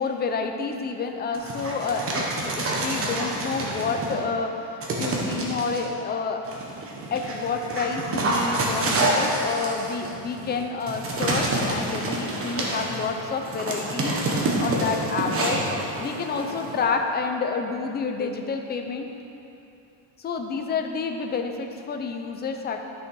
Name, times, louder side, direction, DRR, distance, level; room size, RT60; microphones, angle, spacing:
voice 1, 0.0-6.4 7.1-15.6 16.0-19.1 20.2-22.8, left 4 dB, 20° left, 4 dB, 0.5 m, -29 dB
Dog, 1.3-4.2 4.8-5.8 6.5-16.8, right 2 dB, 30° right, 1.2 m, -28 dB
11.5 x 6.3 x 4.7 m, 2.8 s
cardioid pair, 165°, 46 cm